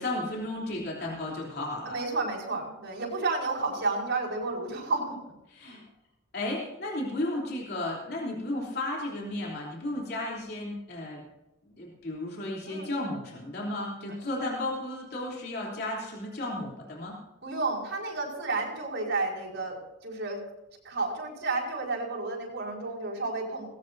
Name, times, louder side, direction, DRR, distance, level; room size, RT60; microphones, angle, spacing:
voice 1, 0.0-2.0 5.5-5.8 6.3-11.2 11.6-17.2, left 1 dB, 50° left, -3 dB, 3.3 m, -34 dB
voice 2, 1.8-5.2 5.6-5.8 12.7-13.1 17.4-20.4 20.8-23.6, right 3 dB, 60° right, -5 dB, 5.0 m, -31 dB
19.5 x 17.5 x 2.7 m, 0.91 s
head